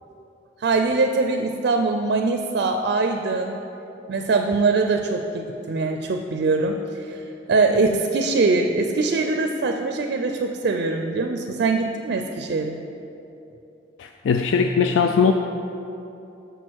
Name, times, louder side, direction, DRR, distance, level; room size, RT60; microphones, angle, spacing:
voice 1, 0.6-3.6 4.1-7.2 7.5-12.8, right 3 dB, 60° right, 5 dB, 0.4 m, -22 dB
voice 2, 14.0-15.3, left 6 dB, 85° left, 5 dB, 0.3 m, -20 dB
6.7 x 6.2 x 4.5 m, 2.9 s
head